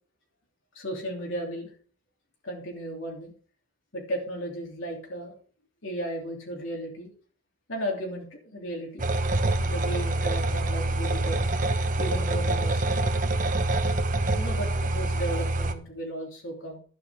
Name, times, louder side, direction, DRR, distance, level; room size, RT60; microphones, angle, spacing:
voice 1, 0.7-1.7 2.4-3.3 3.9-5.3 5.8-7.1 7.7-9.0 9.6-11.5 12.0-13.0 14.3-16.8, right 1 dB, 65° left, -1 dB, 3.1 m, -35 dB
sound 1, 9.0-15.7, right 2 dB, 40° right, 1.2 m, -26 dB
12.0 x 8.8 x 4.9 m, 0.43 s
head